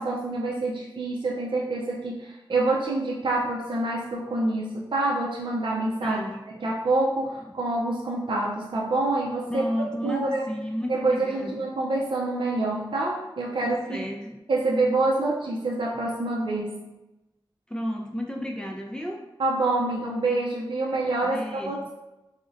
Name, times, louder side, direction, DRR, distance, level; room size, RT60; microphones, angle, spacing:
voice 1, 0.0-6.2 6.5-9.6 10.0-10.4 10.9-14.0 14.5-16.9 19.4-21.9, right 2 dB, 70° right, -3 dB, 0.4 m, -26 dB
voice 2, 6.0-6.4 9.5-11.6 13.6-14.4 17.7-19.2 21.2-21.9, equal, 10° left, 0 dB, 0.4 m, -32 dB
2.6 x 2.1 x 3.7 m, 0.99 s
wide cardioid pair, 65°, 9 cm